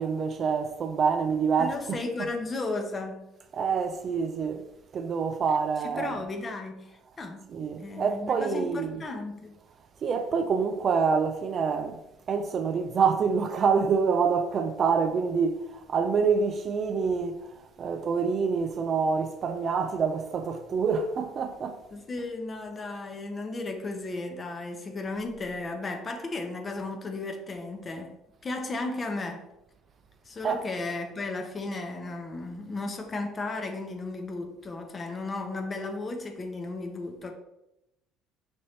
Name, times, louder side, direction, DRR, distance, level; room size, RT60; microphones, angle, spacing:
voice 1, 0.0-2.0 3.5-4.7 4.9-6.2 7.5-9.0 10.0-12.0 12.3-17.5 17.8-21.8 30.4-30.7, right 5 dB, 45° right, 0.4 m, -26 dB
voice 2, 1.6-3.3 5.8-7.5 7.8-9.5 21.9-28.2 28.4-29.5 30.2-37.3, left 3 dB, 30° left, 0.8 m, -35 dB
5.2 x 3.0 x 2.9 m
figure-of-eight pair, 55°, 0 cm